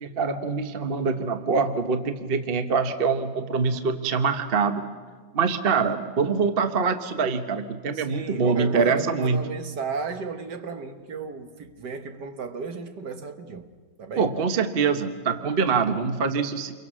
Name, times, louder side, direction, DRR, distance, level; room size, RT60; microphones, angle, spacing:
voice 1, 0.0-4.8 5.3-9.4 14.2-16.7, right 5 dB, 35° right, 1.0 m, -24 dB
voice 2, 7.9-13.7 14.0-14.3, right 4 dB, 55° right, 1.8 m, -34 dB
28.5 x 23.0 x 6.2 m
omnidirectional pair, 2.2 m